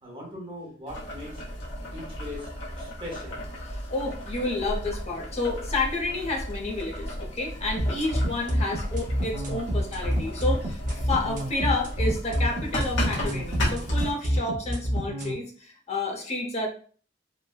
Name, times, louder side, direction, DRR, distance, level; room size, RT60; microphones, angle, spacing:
voice 1, 0.0-1.4 1.9-2.5 2.8-3.4, left 1 dB, 30° right, -2 dB, 0.9 m, -40 dB
Boiling, 0.9-14.1, equal, 75° left, 0.9 m, -35 dB
voice 2, 3.9-16.7, left 2 dB, 35° left, 0 dB, 0.6 m, -30 dB
sound 1, 7.8-15.3, equal, 45° right, 0.5 m, -27 dB
3.1 x 2.0 x 2.2 m, 0.43 s
head